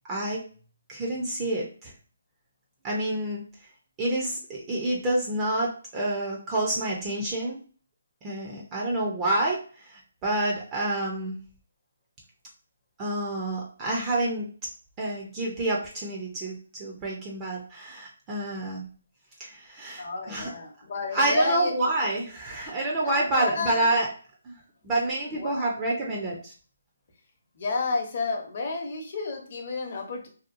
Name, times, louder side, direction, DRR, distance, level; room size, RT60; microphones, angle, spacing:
voice 1, 0.1-0.4 0.9-1.9 2.8-3.4 4.0-7.6 8.2-11.4 13.0-14.5 15.0-18.9 19.4-20.5 21.1-24.1 24.4-24.5 24.8-26.5, right 2 dB, 20° right, -3 dB, 0.5 m, -28 dB
voice 2, 20.0-21.9 23.0-23.9 25.3-25.7 27.6-30.3, left 3 dB, 45° left, 2 dB, 0.8 m, -31 dB
2.7 x 2.2 x 2.5 m, 0.40 s
hypercardioid pair, 155°, 0 cm